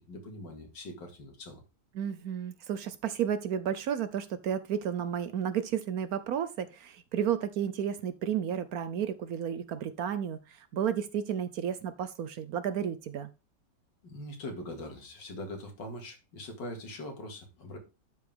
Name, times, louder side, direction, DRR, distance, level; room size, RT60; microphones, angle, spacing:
voice 1, 0.0-1.6 14.0-17.8, left 1 dB, 80° left, 2.7 m, -42 dB
voice 2, 1.9-13.3, right 8 dB, 65° right, 1.0 m, -32 dB
12.0 x 4.8 x 3.5 m
omnidirectional pair, 1.9 m